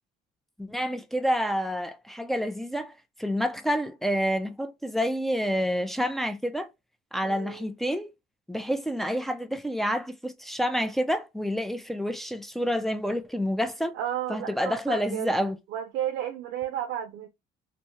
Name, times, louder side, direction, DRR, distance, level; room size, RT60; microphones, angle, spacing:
voice 1, 0.6-2.9 3.2-6.7 7.1-8.1 8.5-13.9 14.3-15.6, equal, ahead, 0.4 m, -28 dB
voice 2, 7.2-7.7 13.9-15.3 15.7-17.3, right 11 dB, 80° right, 0.5 m, -32 dB
2.7 x 2.2 x 3.0 m
cardioid pair, 110°, 17 cm